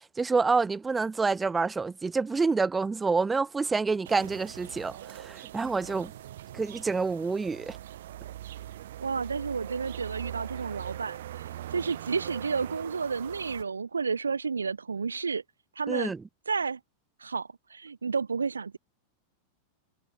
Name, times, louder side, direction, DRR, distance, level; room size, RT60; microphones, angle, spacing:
voice 1, 0.2-6.1 6.5-7.8 15.9-16.2, right 4 dB, 15° right, 2.5 m, -27 dB
sound 1, 4.0-13.6, right 12 dB, 60° right, 2.5 m, -41 dB
voice 2, 9.0-15.4 15.8-16.1 16.5-16.8 17.2-18.8, right 5 dB, 75° right, 0.8 m, -31 dB
figure-of-eight pair, 90°, 0 cm